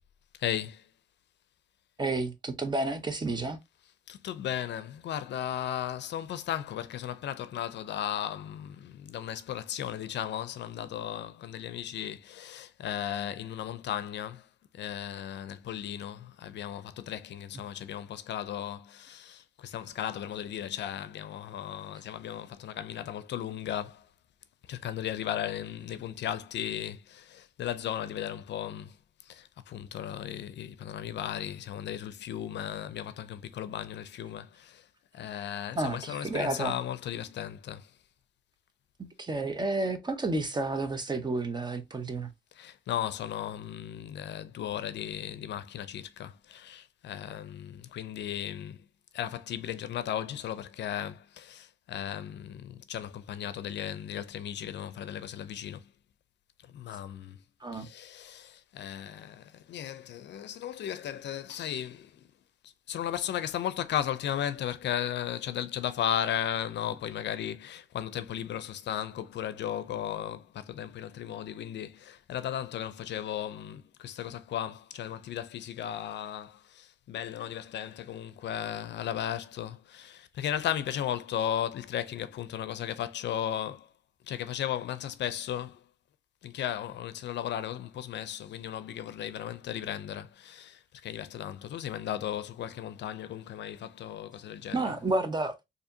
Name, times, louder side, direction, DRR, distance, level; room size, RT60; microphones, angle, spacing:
voice 1, 0.3-0.9 3.8-24.1 24.6-29.0 29.2-34.9 35.1-38.0 42.5-48.9 49.1-55.9 56.6-57.4 57.7-62.3 62.6-83.9 84.3-85.8 86.4-94.9, left 10 dB, 65° left, 0.5 m, -36 dB
voice 2, 2.0-3.6 35.8-36.7 39.0-42.3 57.6-57.9 94.7-95.6, right 2 dB, 20° right, 0.7 m, -31 dB
4.2 x 2.7 x 2.6 m
cardioid pair, 90°, 20 cm